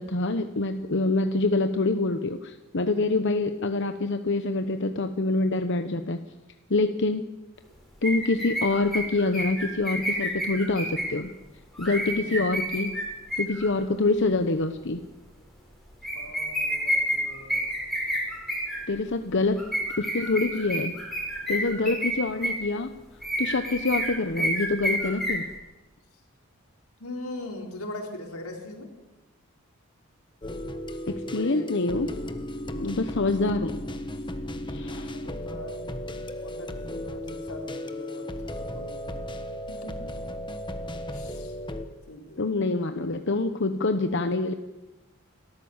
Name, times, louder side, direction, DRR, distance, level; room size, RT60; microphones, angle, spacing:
voice 1, 0.0-6.2 6.7-7.2 8.0-11.3 11.8-12.9 13.4-15.0 18.9-19.6 20.0-20.9 21.5-22.9 23.4-25.4 31.1-32.1 32.8-33.8 34.7-35.1 42.4-44.5, left 3 dB, 55° left, 7 dB, 1.0 m, -26 dB
voice 2, 2.8-3.2 11.8-12.5 16.1-17.7 27.0-28.9 31.2-31.7 32.6-33.1 34.7-35.8 36.4-38.3 38.6-39.2 39.7-40.1 41.1-41.6 42.1-42.5, left 1 dB, 90° left, 1 dB, 4.4 m, -41 dB
sound 1, 8.0-11.2 11.8-13.7 16.0-18.8 19.6-22.6 23.2-25.5, equal, ahead, 5.6 m, -30 dB
sound 2, 30.4-41.9, left 1 dB, 20° left, 1.3 m, -35 dB
29.0 x 13.5 x 7.3 m, 1.1 s
head